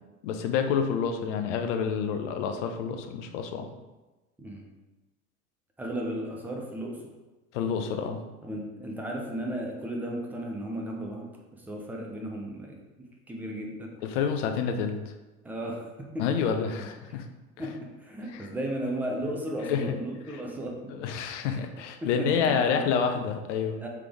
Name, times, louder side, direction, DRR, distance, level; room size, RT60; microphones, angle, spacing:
voice 1, 0.2-3.7 7.5-8.2 14.0-15.0 16.2-17.2 18.3-18.5 19.7-19.8 20.9-23.8, left 6 dB, 55° left, 6 dB, 0.6 m, -28 dB
voice 2, 5.8-7.0 8.4-12.8 13.3-13.9 15.4-16.3 16.8-16.9 17.6-20.9 21.4-21.6 22.0-22.8 23.8-23.9, right 1 dB, 5° right, 0 dB, 0.4 m, -35 dB
3.4 x 3.3 x 3.4 m, 1.1 s
figure-of-eight pair, 85°, 44 cm